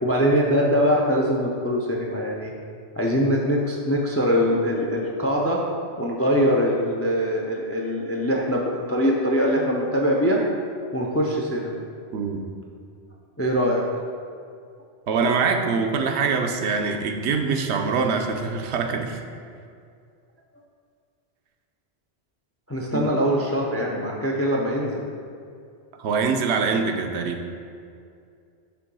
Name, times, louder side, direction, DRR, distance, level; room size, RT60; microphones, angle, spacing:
voice 1, 0.0-2.5 3.0-5.6 6.0-10.4 10.9-11.8 13.4-13.8 22.7-25.0, equal, 25° left, -1 dB, 0.3 m, -22 dB
voice 2, 12.1-12.4 15.1-19.2 22.9-23.1 26.0-27.4, right 5 dB, 80° right, 4 dB, 0.9 m, -24 dB
6.8 x 3.0 x 5.3 m, 2.3 s
omnidirectional pair, 1.1 m